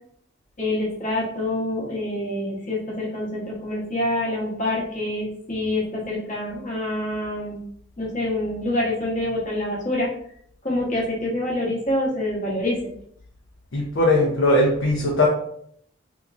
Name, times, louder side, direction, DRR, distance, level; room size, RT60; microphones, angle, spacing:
voice 1, 0.6-7.6 8.0-10.1 10.6-12.8, left 1 dB, 40° left, -4 dB, 1.0 m, -26 dB
voice 2, 13.7-15.3, left 1 dB, 65° left, -2 dB, 0.6 m, -19 dB
3.6 x 2.9 x 2.5 m, 0.69 s
head